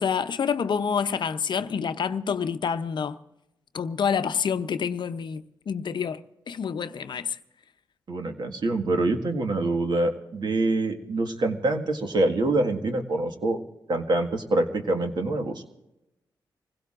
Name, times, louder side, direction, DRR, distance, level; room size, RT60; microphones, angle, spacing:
voice 1, 0.0-3.2 3.7-7.4, left 6 dB, 60° left, 0.7 m, -28 dB
voice 2, 8.1-13.6 13.9-15.7, right 2 dB, 55° right, 1.7 m, -25 dB
26.0 x 16.5 x 2.5 m
supercardioid pair, 55°, 9 cm